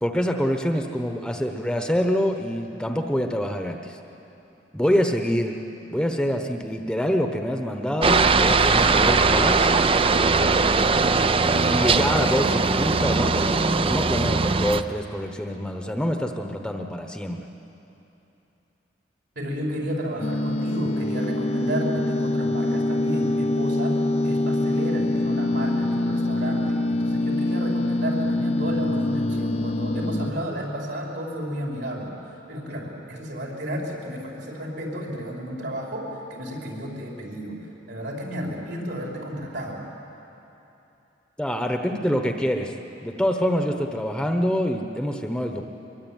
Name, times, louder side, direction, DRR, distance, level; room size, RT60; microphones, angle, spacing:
voice 1, 0.0-4.0 4.7-5.6 5.9-9.7 11.7-17.5 41.4-42.7 43.0-45.6, equal, 5° left, 4 dB, 1.1 m, -25 dB
Aircraft, 8.0-14.8, right 4 dB, 30° right, 0.6 m, -20 dB
voice 2, 19.4-32.1 32.5-37.6 37.9-39.9, equal, 70° right, -2 dB, 5.6 m, -32 dB
sound 1, 20.2-30.3, left 2 dB, 35° left, 0.7 m, -24 dB
23.0 x 23.0 x 9.3 m, 2.9 s
head